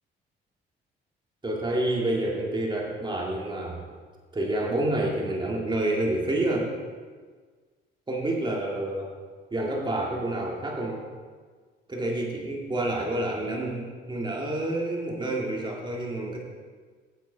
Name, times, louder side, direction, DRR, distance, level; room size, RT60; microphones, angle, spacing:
voice 1, 1.4-3.8 4.3-6.7 8.1-9.1 9.5-11.0 11.9-16.4, right 1 dB, 25° right, -2 dB, 2.3 m, -28 dB
8.4 x 7.4 x 5.2 m, 1.5 s
cardioid pair, 90°, 20 cm